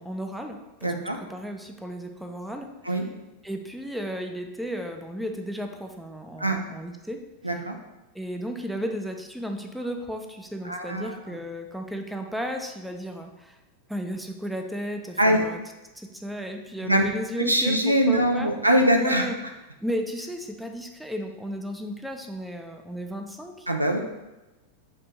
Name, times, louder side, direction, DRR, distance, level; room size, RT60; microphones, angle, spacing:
voice 1, 0.0-2.7 3.4-7.2 8.1-13.6 13.9-15.6 15.9-18.5 19.0-19.4 19.8-23.7, equal, 5° right, 4 dB, 0.4 m, -34 dB
voice 2, 0.8-1.2 2.8-3.0 6.4-6.6 7.4-7.8 10.6-11.2 15.2-15.4 16.8-17.0 17.5-19.2 23.7-24.0, right 1 dB, 85° right, 4 dB, 0.4 m, -22 dB
4.3 x 2.5 x 4.5 m, 1.0 s
figure-of-eight pair, 90°, 0 cm